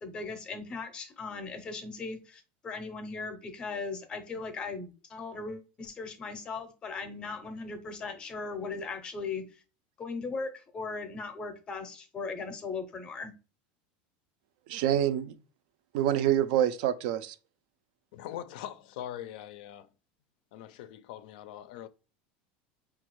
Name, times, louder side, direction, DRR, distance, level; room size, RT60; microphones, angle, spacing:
voice 1, 0.0-9.4 10.0-13.3, left 4 dB, 20° left, 0.6 m, -38 dB
voice 2, 14.7-15.3 15.9-17.3, right 11 dB, 60° right, 0.4 m, -26 dB
voice 3, 18.1-19.9 20.5-21.9, left 11 dB, 65° left, 0.4 m, -42 dB
5.1 x 2.4 x 3.0 m
supercardioid pair, 170°, 5 cm